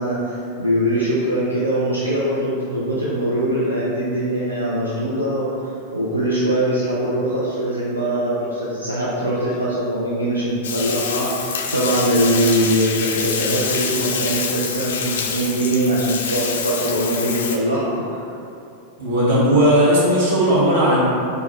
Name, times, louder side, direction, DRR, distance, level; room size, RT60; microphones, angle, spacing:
voice 1, 0.0-5.5 5.9-18.3, right 1 dB, 85° right, -7 dB, 0.4 m, -22 dB
Bathtub (filling or washing), 10.6-17.6, left 6 dB, 60° left, 0.3 m, -26 dB
voice 2, 19.0-21.0, equal, 55° right, -7 dB, 1.0 m, -16 dB
4.3 x 2.1 x 2.8 m, 2.6 s
figure-of-eight pair, 90°, 0 cm